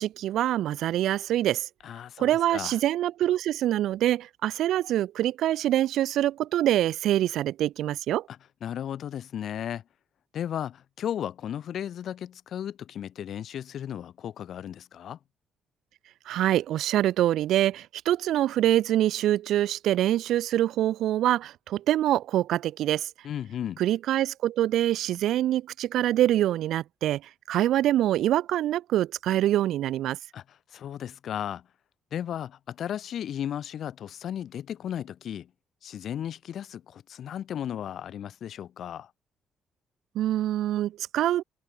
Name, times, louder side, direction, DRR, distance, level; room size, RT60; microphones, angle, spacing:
voice 1, 0.0-1.7 2.2-8.3 16.3-23.1 23.8-30.2 40.1-41.4, right 13 dB, 80° right, 0.6 m, -25 dB
voice 2, 1.8-2.8 8.3-9.8 10.3-15.2 23.2-23.8 30.3-30.4 30.7-31.6 32.1-35.5 35.8-39.1, left 10 dB, 65° left, 0.8 m, -35 dB
cardioid pair, 90°, 0 cm